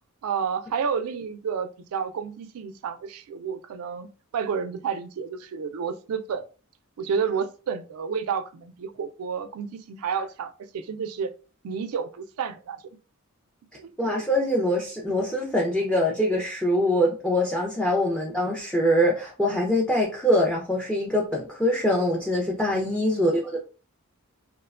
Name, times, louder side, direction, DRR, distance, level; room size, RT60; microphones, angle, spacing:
voice 1, 0.2-6.4 7.0-11.3 11.6-13.0 13.7-14.0 22.8-23.1, right 6 dB, 75° right, 0.4 m, -30 dB
voice 2, 14.0-23.6, equal, 5° left, 0.4 m, -24 dB
2.8 x 2.1 x 2.3 m
head